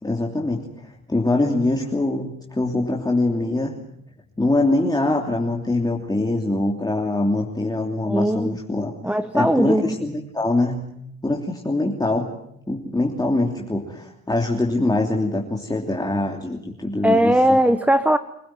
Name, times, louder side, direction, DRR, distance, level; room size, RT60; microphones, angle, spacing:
voice 1, 0.0-3.7 4.4-10.8 11.2-12.3 12.7-17.3, left 2 dB, 15° left, 0 dB, 3.0 m, -23 dB
voice 2, 8.0-8.6 9.0-10.0 17.0-18.2, right 1 dB, 5° right, 11 dB, 1.1 m, -19 dB
26.5 x 16.0 x 9.2 m, 0.77 s
cardioid pair, 90°, 30 cm